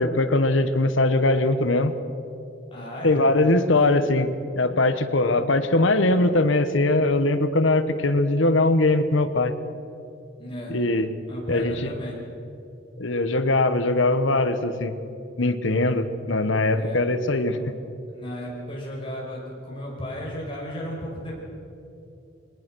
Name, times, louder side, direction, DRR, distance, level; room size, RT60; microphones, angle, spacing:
voice 1, 0.0-1.9 3.0-4.3 4.6-9.5 10.7-11.1 11.5-11.9 13.0-14.9 15.4-17.6, left 2 dB, 75° left, 11 dB, 1.2 m, -21 dB
voice 2, 2.7-3.6 10.4-10.7 11.3-12.2 15.7-15.9 16.7-17.0 18.1-21.3, equal, 25° left, -3 dB, 5.4 m, -34 dB
22.0 x 19.0 x 6.3 m, 2.8 s
head